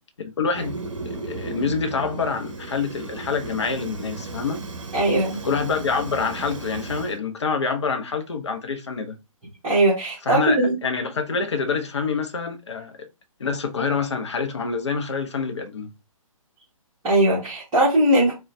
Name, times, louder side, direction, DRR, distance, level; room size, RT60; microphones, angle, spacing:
voice 1, 0.2-0.8 1.0-4.6 5.4-9.2 10.2-13.1 13.4-15.9, left 5 dB, 50° left, 0.8 m, -26 dB
Fire, 0.5-7.2, right 3 dB, 60° right, 0.8 m, -35 dB
voice 2, 4.9-5.4 9.6-10.7 17.0-18.3, right 1 dB, 20° right, 1.7 m, -19 dB
3.8 x 2.4 x 3.3 m
figure-of-eight pair, 135°, 18 cm